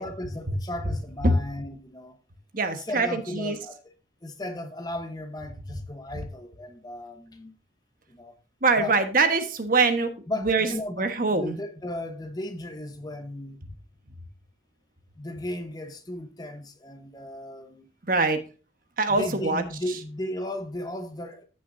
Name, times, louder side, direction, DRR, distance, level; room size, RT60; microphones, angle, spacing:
voice 1, 0.0-2.2 2.7-3.8 4.2-7.5 8.1-8.3 8.8-8.9 10.3-13.6 15.2-17.9 19.1-21.4, left 1 dB, 20° left, 1.0 m, -35 dB
voice 2, 2.5-3.6 8.6-10.1 10.4-10.7 11.0-11.6 18.1-18.4 19.0-19.6, right 3 dB, 50° right, 1.2 m, -23 dB
14.5 x 6.1 x 2.6 m
head